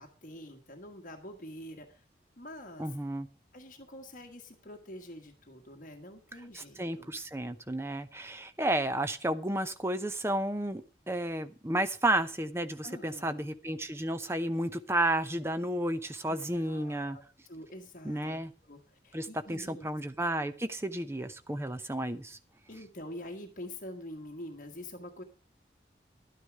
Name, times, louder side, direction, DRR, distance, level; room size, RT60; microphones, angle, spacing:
voice 1, 0.0-2.0 2.4-3.0 3.5-7.1 12.8-13.5 16.3-19.9 22.7-25.2, left 1 dB, 45° left, 3 dB, 1.5 m, -46 dB
voice 2, 2.8-3.3 6.5-17.2 18.0-18.5 19.1-22.4, right 1 dB, 15° right, 10 dB, 0.8 m, -32 dB
12.0 x 9.6 x 4.8 m, 0.36 s
head